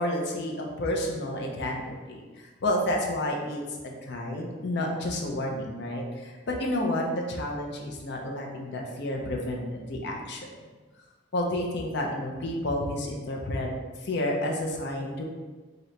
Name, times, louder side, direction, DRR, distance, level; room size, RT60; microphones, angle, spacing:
voice 1, 0.0-1.8 2.1-2.2 2.6-10.5 11.3-13.7 14.0-15.2, left 1 dB, 60° left, 0 dB, 0.6 m, -30 dB
3.9 x 2.8 x 3.2 m, 1.3 s
head